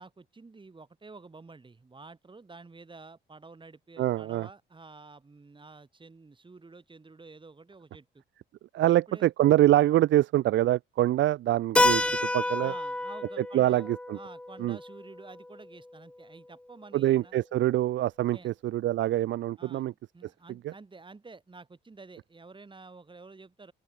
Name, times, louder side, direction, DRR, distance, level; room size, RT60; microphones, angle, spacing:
voice 1, 0.0-8.2 8.9-9.3 12.6-17.4 18.3-18.5 19.6-23.7, right 3 dB, 25° right, 4.5 m, -50 dB
voice 2, 4.0-4.5 8.7-12.7 13.4-14.2 14.6-14.8 16.9-19.9 20.6-20.7, right 14 dB, 70° right, 0.5 m, -25 dB
Keyboard (musical), 11.8-16.2, left 1 dB, 5° left, 0.5 m, -29 dB
open air
cardioid pair, 90°, 20 cm